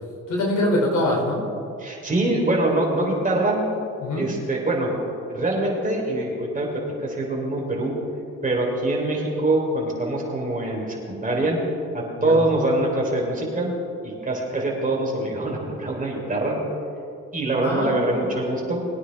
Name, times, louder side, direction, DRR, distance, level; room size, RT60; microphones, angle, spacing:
voice 1, 0.3-1.5 4.0-4.3 12.2-12.4 17.6-18.3, left 1 dB, 70° left, 0 dB, 3.0 m, -24 dB
voice 2, 1.8-3.6 4.2-4.9 5.3-7.9 8.4-11.6 11.9-13.7 14.0-16.6 17.3-18.9, right 2 dB, 25° right, -2 dB, 3.5 m, -24 dB
21.0 x 9.4 x 3.5 m, 2.5 s
cardioid pair, 75°, 31 cm